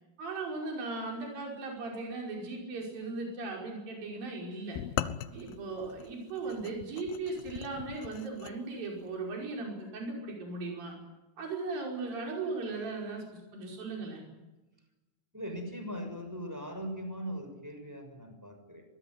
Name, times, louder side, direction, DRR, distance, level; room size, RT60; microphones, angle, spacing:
voice 1, 0.2-4.8 5.3-10.9 11.4-14.2, right 3 dB, 70° right, -1 dB, 7.1 m, -37 dB
sound 1, 4.7-8.6, left 11 dB, 80° left, 2.8 m, -39 dB
voice 2, 15.3-18.8, equal, 5° right, 6 dB, 6.2 m, -40 dB
24.5 x 21.5 x 9.6 m, 1.1 s
omnidirectional pair, 4.2 m